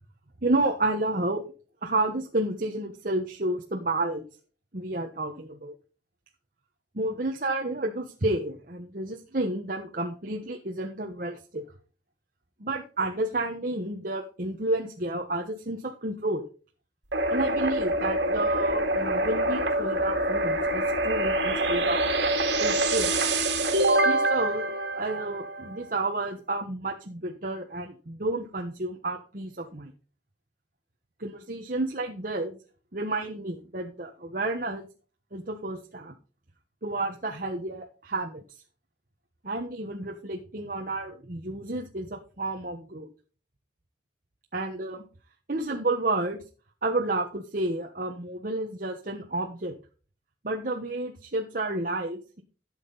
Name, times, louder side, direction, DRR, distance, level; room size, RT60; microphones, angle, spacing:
voice 1, 0.4-1.4 1.8-4.2 4.7-5.7 6.9-11.6 12.6-16.4 17.3-22.0 22.6-23.3 24.0-29.9 31.2-32.6 32.9-34.9 35.3-36.1 36.8-38.4 39.4-43.1 44.5-45.0 45.5-46.4 46.8-49.7 50.4-52.4, right 2 dB, 45° right, 1 dB, 1.2 m, -31 dB
sound 1, 17.1-25.8, right 1 dB, 65° right, 2.5 m, -25 dB
13.0 x 7.4 x 4.0 m, 0.37 s
head